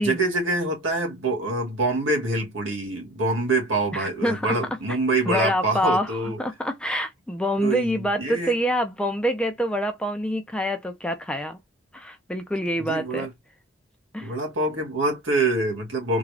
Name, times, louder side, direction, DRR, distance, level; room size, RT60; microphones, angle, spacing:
voice 1, 0.0-6.4 7.6-8.5 12.8-13.3 14.2-16.2, right 2 dB, 80° right, 2.0 m, -25 dB
voice 2, 3.9-4.6 5.3-11.6 11.9-13.3 14.1-14.3, equal, 5° left, 0.5 m, -26 dB
3.7 x 2.4 x 3.3 m
head